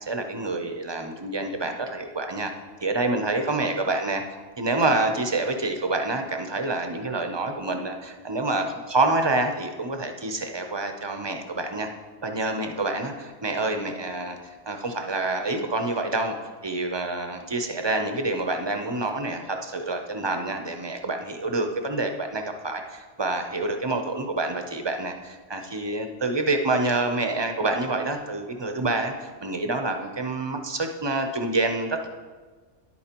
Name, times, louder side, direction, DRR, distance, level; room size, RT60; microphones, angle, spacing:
voice 1, 0.0-2.5 2.8-4.2 4.6-11.9 12.2-16.4 16.6-32.1, right 2 dB, 35° right, 5 dB, 0.4 m, -27 dB
10.5 x 8.5 x 2.9 m, 1.4 s
omnidirectional pair, 1.3 m